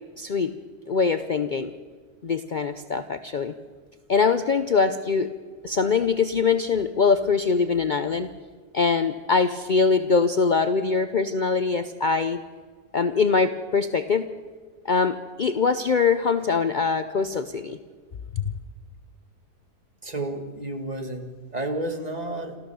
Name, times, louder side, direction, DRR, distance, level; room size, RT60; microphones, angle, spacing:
voice 1, 0.2-0.5 0.9-1.7 2.2-3.5 4.1-5.3 5.6-8.3 8.7-12.4 12.9-14.3 14.8-17.8 18.3-18.5, left 5 dB, 65° left, 9 dB, 0.4 m, -23 dB
voice 2, 20.0-22.6, right 1 dB, 25° right, 5 dB, 1.8 m, -31 dB
27.5 x 13.5 x 7.0 m, 1.5 s
omnidirectional pair, 1.8 m